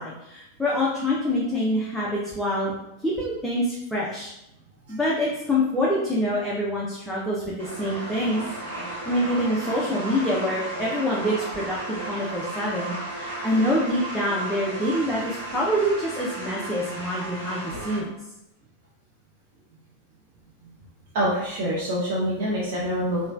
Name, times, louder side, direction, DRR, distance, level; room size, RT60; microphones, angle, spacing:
voice 1, 0.0-2.7 3.0-4.3 4.9-8.4 8.9-18.1, equal, 5° left, -7 dB, 0.5 m, -26 dB
sound 1, 7.6-18.0, right 1 dB, 65° right, 1.1 m, -34 dB
voice 2, 21.1-23.3, equal, 50° right, -6 dB, 0.6 m, -26 dB
3.0 x 2.1 x 2.4 m, 0.86 s
figure-of-eight pair, 90°, 0 cm